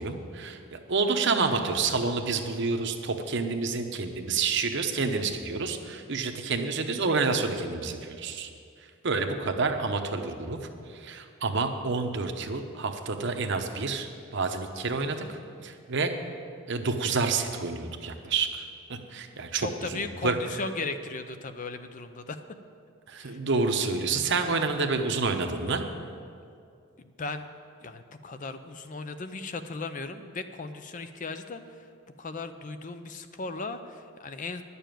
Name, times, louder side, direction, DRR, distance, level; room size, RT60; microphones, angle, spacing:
voice 1, 0.0-8.5 9.0-10.6 10.9-16.1 16.7-20.4 23.1-25.8, right 4 dB, 55° right, 6 dB, 0.9 m, -29 dB
voice 2, 19.5-22.4 23.2-23.4 27.2-27.5 27.8-31.9 32.2-34.6, left 3 dB, 35° left, 9 dB, 0.5 m, -37 dB
10.0 x 7.0 x 9.1 m, 2.4 s
head